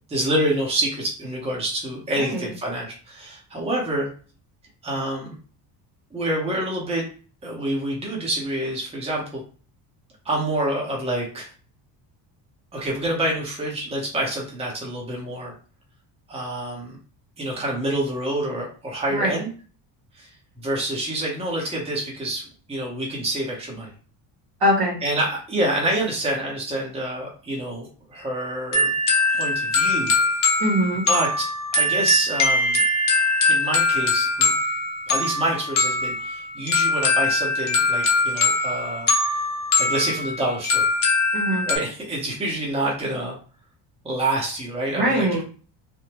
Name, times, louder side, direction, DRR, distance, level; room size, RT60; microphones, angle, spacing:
voice 1, 0.1-4.1 4.8-5.3 6.1-7.0 7.4-9.4 10.2-11.5 12.7-15.5 16.3-17.0 17.4-19.5 20.1-20.3 20.6-23.9 25.0-28.9 29.3-30.1 31.1-32.8 33.4-34.5 35.1-39.1 39.8-40.9 41.7-43.3 44.0-45.4, right 1 dB, 15° right, -3 dB, 0.9 m, -27 dB
voice 2, 2.2-2.5 19.1-19.4 24.6-25.0 30.6-31.0 41.3-41.6 45.0-45.4, equal, 55° right, -2 dB, 1.2 m, -22 dB
sound 1, 28.7-41.8, left 2 dB, 45° left, 0.9 m, -22 dB
3.4 x 2.1 x 2.9 m, 0.38 s
cardioid pair, 140°, 45 cm